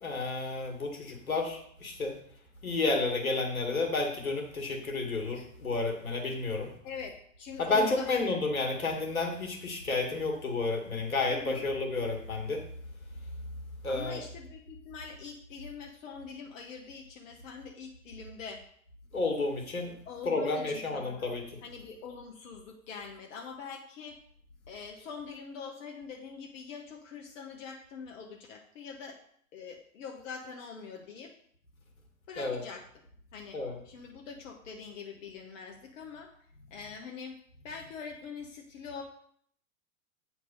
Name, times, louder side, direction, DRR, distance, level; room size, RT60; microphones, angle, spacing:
voice 1, 0.0-2.1 2.6-6.7 7.6-12.6 13.8-14.2 19.1-19.9 20.3-21.4 32.4-32.6 33.5-33.8, left 3 dB, 90° left, 2 dB, 2.2 m, -31 dB
voice 2, 6.8-8.3 11.3-11.7 13.9-18.6 20.0-21.3 21.6-24.2 24.7-29.2 29.5-31.3 32.3-32.8 33.3-33.6 33.8-36.3 36.7-37.4 37.6-39.0, left 6 dB, 65° left, 2 dB, 1.3 m, -44 dB
9.3 x 4.5 x 5.5 m, 0.64 s
hypercardioid pair, 100°, 41 cm